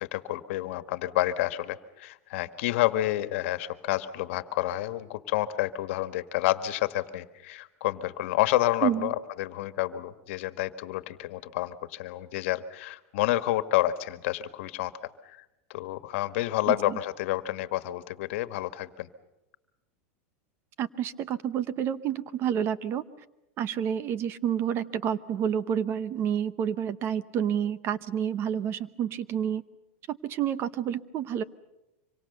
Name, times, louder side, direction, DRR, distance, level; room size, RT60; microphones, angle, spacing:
voice 1, 0.0-14.9 15.2-15.4 15.7-19.1, left 15 dB, 65° left, 12 dB, 1.6 m, -29 dB
voice 2, 8.8-9.1 16.7-17.0 20.8-23.0 23.6-29.6 30.1-31.4, right 9 dB, 35° right, 16 dB, 0.9 m, -29 dB
25.5 x 24.5 x 6.7 m, 0.93 s
supercardioid pair, 150°, 7 cm